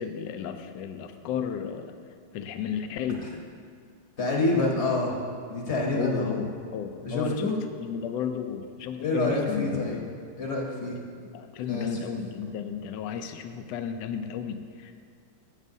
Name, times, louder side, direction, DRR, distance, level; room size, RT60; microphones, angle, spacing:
voice 1, 0.0-1.9 2.3-3.3 5.9-7.5 7.8-10.1 10.9-11.0 11.3-15.0, left 8 dB, 80° left, 8 dB, 1.2 m, -33 dB
voice 2, 4.2-5.2 5.5-6.4 7.0-7.6 9.0-10.0 10.4-11.0 11.7-12.2, left 2 dB, 45° left, -1 dB, 1.1 m, -27 dB
16.0 x 6.5 x 2.7 m, 2.1 s
omnidirectional pair, 1.9 m